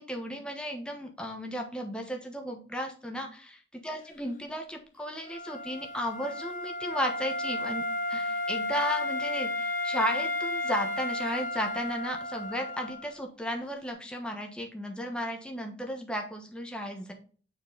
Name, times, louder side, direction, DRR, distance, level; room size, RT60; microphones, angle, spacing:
voice 1, 0.0-7.8 8.1-17.1, equal, 5° left, 2 dB, 1.1 m, -34 dB
Wind instrument woodwind instrument, 5.3-13.1, left 2 dB, 45° left, 0.9 m, -33 dB
6.6 x 4.6 x 3.8 m, 0.40 s
head